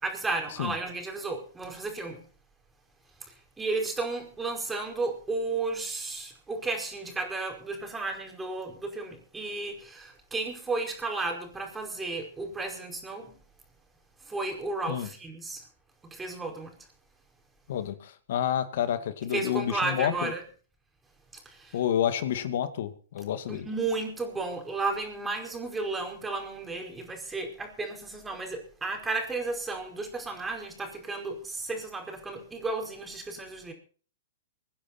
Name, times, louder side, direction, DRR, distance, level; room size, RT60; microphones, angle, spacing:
voice 1, 0.0-2.3 3.2-13.4 14.2-15.7 16.0-16.7 19.3-20.4 21.4-21.8 23.5-33.7, right 3 dB, 10° right, 5.0 m, -33 dB
voice 2, 17.7-20.3 21.7-23.7, left 10 dB, 65° left, 2.1 m, -29 dB
25.0 x 9.9 x 4.4 m
hypercardioid pair, 130°, 0 cm